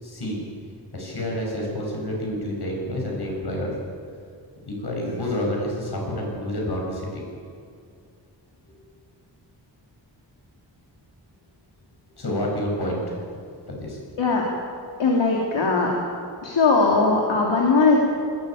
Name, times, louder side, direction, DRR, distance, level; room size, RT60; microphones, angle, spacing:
voice 1, 0.0-0.4 0.9-3.7 4.7-7.2 12.1-13.1 13.7-14.0, left 1 dB, 60° left, -1 dB, 7.5 m, -28 dB
voice 2, 15.0-15.9 16.4-18.1, left 3 dB, 75° left, -2 dB, 3.2 m, -19 dB
21.0 x 17.0 x 9.3 m, 2.4 s
wide cardioid pair, 115°, 44 cm